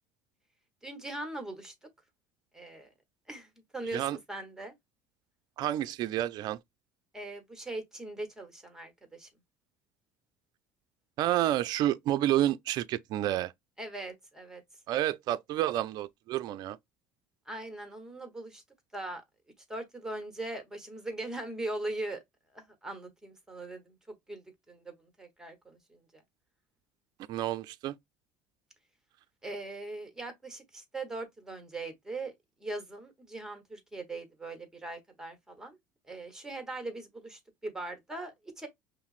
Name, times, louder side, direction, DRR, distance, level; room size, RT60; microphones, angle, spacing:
voice 1, 0.8-1.7 2.5-2.9 3.3-3.5 3.7-4.7 7.1-9.3 13.8-14.6 17.5-18.6 18.9-19.2 19.7-22.2 22.5-23.9 24.3-26.0 29.4-32.3 32.6-35.8 36.1-38.7, right 2 dB, 5° right, 1.0 m, -40 dB
voice 2, 5.6-6.6 11.2-13.5 14.9-16.8 27.3-27.9, right 13 dB, 50° right, 0.3 m, -29 dB
5.6 x 2.0 x 2.4 m
supercardioid pair, 115°, 9 cm